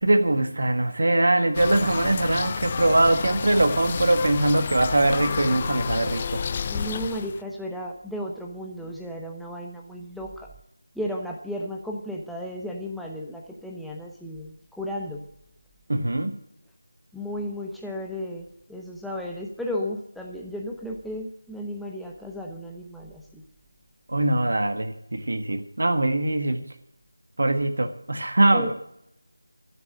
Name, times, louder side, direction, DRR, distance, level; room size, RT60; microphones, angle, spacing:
voice 1, 0.0-6.4 15.9-16.3 24.1-26.6 27.4-28.7, right 2 dB, 60° right, 7 dB, 1.5 m, -22 dB
sound 1, 1.5-7.4, left 6 dB, 25° left, 0.4 m, -30 dB
voice 2, 6.7-10.5 10.9-15.2 17.1-18.4 18.7-23.4 28.5-28.7, equal, ahead, -1 dB, 0.9 m, -34 dB
13.5 x 8.0 x 8.9 m, 0.77 s
figure-of-eight pair, 165°, 0 cm